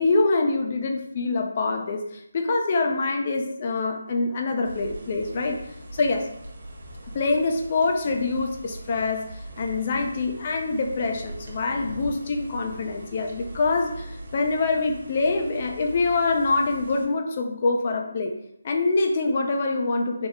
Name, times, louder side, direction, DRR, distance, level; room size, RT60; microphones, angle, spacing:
voice 1, 0.0-5.6 5.9-6.3 7.1-18.3 18.6-20.3, left 3 dB, 35° left, 3 dB, 0.5 m, -25 dB
sound 1, 4.6-17.1, right 1 dB, 55° right, 0.8 m, -41 dB
3.8 x 2.0 x 3.6 m, 0.78 s
figure-of-eight pair, 160°, 0 cm